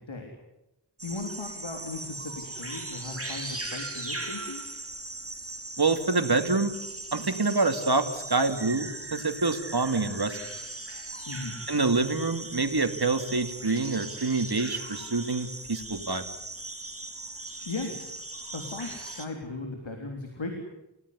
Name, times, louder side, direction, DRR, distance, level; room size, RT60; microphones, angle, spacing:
voice 1, 1.0-4.7 11.3-11.6 17.7-17.9 18.5-20.6, left 3 dB, 75° left, 3 dB, 3.8 m, -37 dB
sound 1, 1.0-19.3, right 2 dB, 30° right, 3.2 m, -39 dB
voice 2, 5.8-6.7 7.1-10.4 11.7-16.2, right 3 dB, 55° right, 7 dB, 2.7 m, -26 dB
29.5 x 17.0 x 9.8 m, 0.92 s
wide cardioid pair, 45°, 46 cm